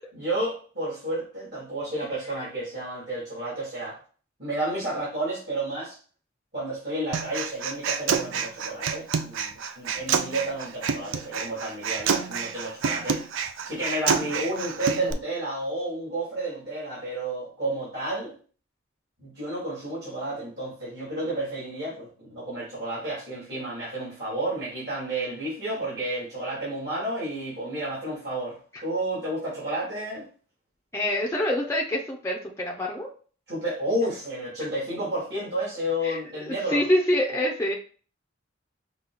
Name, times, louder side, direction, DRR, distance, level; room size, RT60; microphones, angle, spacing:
voice 1, 0.1-4.0 4.4-6.0 6.5-13.3 13.6-18.3 19.2-30.2 33.5-36.8, right 1 dB, 55° right, -8 dB, 2.2 m, -31 dB
Human voice, 7.1-15.1, right 6 dB, 80° right, 0.4 m, -28 dB
voice 2, 30.9-33.1 36.0-37.7, left 1 dB, 15° left, -1 dB, 0.5 m, -26 dB
5.7 x 2.3 x 3.9 m, 0.41 s
head